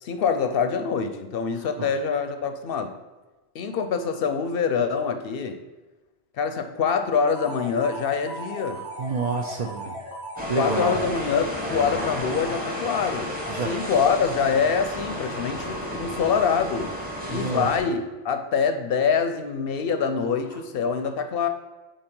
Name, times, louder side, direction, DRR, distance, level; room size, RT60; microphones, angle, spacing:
voice 1, 0.0-2.9 3.5-5.6 6.4-8.8 10.5-16.9 17.3-21.5, left 6 dB, 65° left, 8 dB, 0.7 m, -25 dB
sound 1, 7.3-15.1, equal, 80° right, 2.6 m, -39 dB
voice 2, 9.0-9.9 10.5-11.0 13.5-13.7 17.3-17.7, right 4 dB, 50° right, 3 dB, 0.5 m, -28 dB
sound 2, 10.4-17.8, equal, 10° right, 1.0 m, -32 dB
5.5 x 4.3 x 5.2 m, 1.2 s
omnidirectional pair, 1.1 m